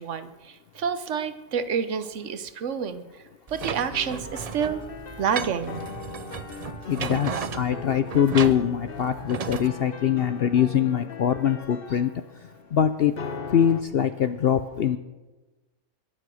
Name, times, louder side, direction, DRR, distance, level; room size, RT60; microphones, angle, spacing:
voice 1, 0.0-3.0 3.5-4.8 5.2-5.8, right 7 dB, 55° right, 12 dB, 1.2 m, -28 dB
sound 1, 3.5-9.7, right 6 dB, 85° right, 0.3 m, -35 dB
sound 2, 3.6-13.8, left 5 dB, 40° left, 1.1 m, -40 dB
voice 2, 6.9-12.1 12.7-13.1 13.5-15.0, left 9 dB, 65° left, 11 dB, 0.6 m, -23 dB
22.5 x 7.7 x 6.3 m, 1.1 s
omnidirectional pair, 1.6 m